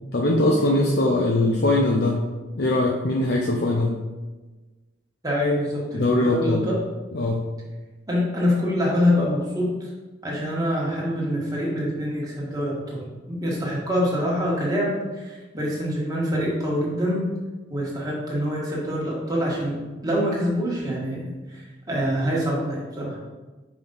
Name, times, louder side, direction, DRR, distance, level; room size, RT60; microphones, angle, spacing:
voice 1, 0.1-2.2 2.6-4.0 5.9-6.6 7.1-7.5, left 2 dB, 60° left, -1 dB, 0.6 m, -21 dB
voice 2, 5.2-6.8 8.1-9.9 10.2-17.3 17.7-23.2, equal, 20° right, -5 dB, 1.6 m, -25 dB
5.2 x 5.0 x 4.0 m, 1.2 s
head